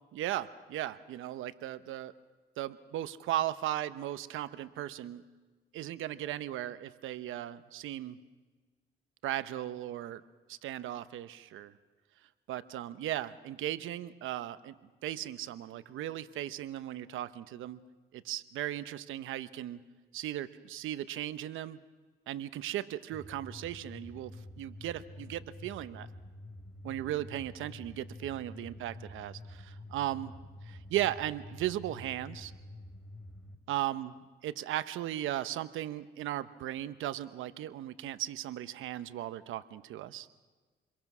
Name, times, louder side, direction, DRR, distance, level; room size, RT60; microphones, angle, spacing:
voice 1, 0.1-2.1 2.6-5.2 5.7-8.2 9.2-10.2 10.5-11.7 12.5-14.7 15.0-17.8 18.1-19.8 20.1-21.8 22.3-26.1 26.8-30.3 30.7-32.5 33.7-34.1 34.4-40.3, right 13 dB, 85° right, 13 dB, 1.0 m, -37 dB
sound 1, 23.1-33.6, left 1 dB, ahead, 3.6 m, -48 dB
28.5 x 22.5 x 6.1 m, 1.4 s
cardioid pair, 90°, 20 cm